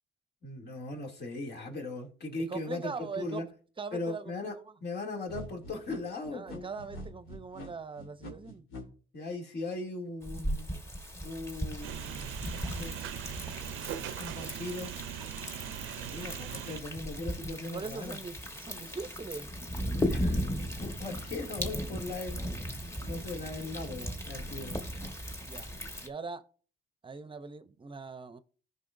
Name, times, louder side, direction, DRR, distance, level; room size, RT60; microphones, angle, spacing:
voice 1, 0.4-3.5 3.9-4.5 4.8-6.7 9.1-10.7 11.2-13.0 13.6-14.9 15.9-18.2 20.0-25.1, left 2 dB, 55° left, 2.7 m, -39 dB
voice 2, 2.5-3.5 3.8-4.6 6.3-8.6 17.4-19.5 25.4-25.7 26.0-26.4 27.0-28.4, right 4 dB, 25° right, 0.7 m, -41 dB
sound 1, 5.3-8.8, left 1 dB, 85° left, 3.1 m, -44 dB
Thunder, 10.2-26.1, equal, 15° left, 1.3 m, -37 dB
sound 2, 11.8-16.8, right 11 dB, 90° right, 0.5 m, -40 dB
15.5 x 5.4 x 2.6 m
cardioid pair, 90°, 20 cm